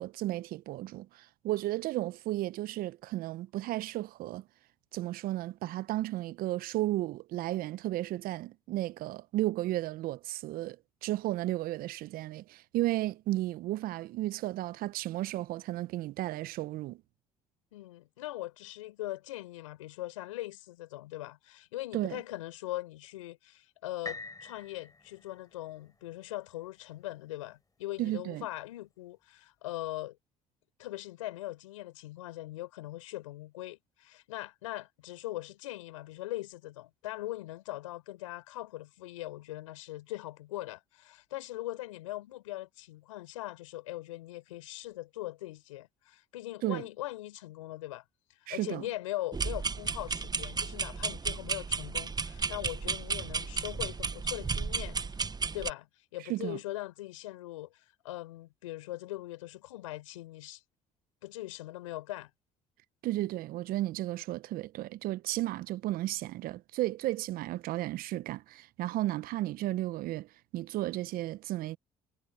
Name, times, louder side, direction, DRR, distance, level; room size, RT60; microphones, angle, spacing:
voice 1, 0.0-4.4 4.9-17.0 21.9-22.2 28.0-28.5 46.6-46.8 48.5-48.9 56.3-56.6 63.0-71.8, right 16 dB, 65° right, 0.9 m, -34 dB
voice 2, 17.7-30.2 30.8-48.0 48.3-55.0 55.5-60.6 61.2-62.3, left 16 dB, 85° left, 4.8 m, -41 dB
sound 1, 24.0-28.0 28.6-28.7, left 3 dB, 20° left, 5.3 m, -47 dB
sound 2, 49.3-55.7, right 4 dB, 25° right, 1.0 m, -33 dB
hypercardioid pair, 55°, 16 cm